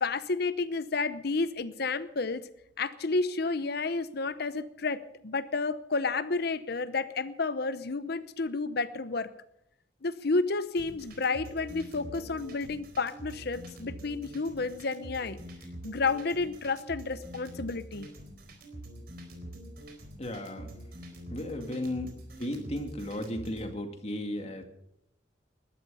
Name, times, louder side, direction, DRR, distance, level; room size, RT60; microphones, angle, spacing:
voice 1, 0.0-2.4 2.8-9.3 10.0-15.4 15.8-18.1, left 3 dB, 55° left, 14 dB, 0.8 m, -31 dB
sound 1, 10.8-23.6, right 1 dB, 55° right, 4.1 m, -45 dB
voice 2, 20.2-20.7 21.3-22.1 22.4-24.6, left 1 dB, 35° left, 5 dB, 2.3 m, -35 dB
20.5 x 12.5 x 5.6 m, 0.78 s
head